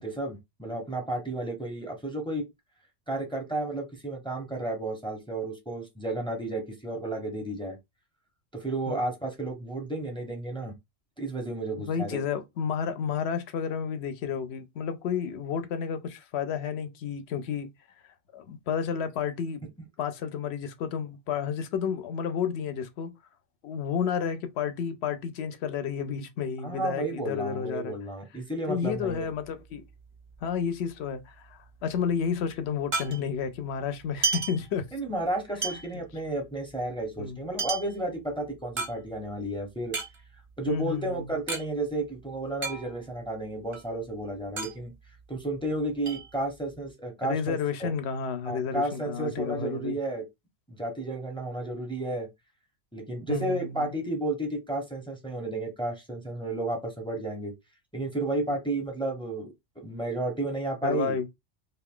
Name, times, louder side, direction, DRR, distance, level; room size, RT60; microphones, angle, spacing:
voice 1, 0.0-2.4 3.1-7.8 8.5-10.7 11.2-12.2 26.6-29.3 34.9-40.0 40.6-44.9 45.3-47.9 48.4-50.2 50.7-52.3 52.9-57.5 57.9-61.2, right 2 dB, 5° left, 0.7 m, -32 dB
voice 2, 11.9-17.7 18.3-19.6 20.0-23.1 23.6-27.9 28.7-29.8 30.4-34.8 37.2-37.4 40.7-41.2 47.2-50.0 53.3-53.9 60.8-61.3, left 7 dB, 70° left, 0.9 m, -31 dB
sound 1, 28.9-30.6 30.9-31.0 31.2-33.6 34.0-35.2 35.6-39.4 39.8-41.7 41.9-42.0 42.3-43.2 43.6-45.7 46.1-46.9, right 4 dB, 35° right, 0.6 m, -34 dB
2.7 x 2.4 x 3.5 m
omnidirectional pair, 1.2 m